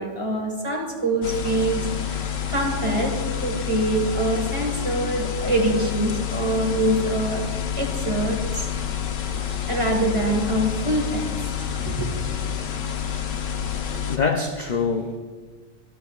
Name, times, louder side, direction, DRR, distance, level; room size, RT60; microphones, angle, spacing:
voice 1, 0.0-7.5 7.7-8.7 9.7-11.2 11.6-12.1, right 1 dB, 25° right, 1 dB, 1.5 m, -25 dB
sound 1, 1.2-14.2, left 8 dB, 85° left, 1.2 m, -28 dB
voice 2, 13.8-15.2, left 5 dB, 55° left, 5 dB, 0.5 m, -25 dB
13.5 x 11.5 x 2.4 m, 1.4 s
omnidirectional pair, 1.3 m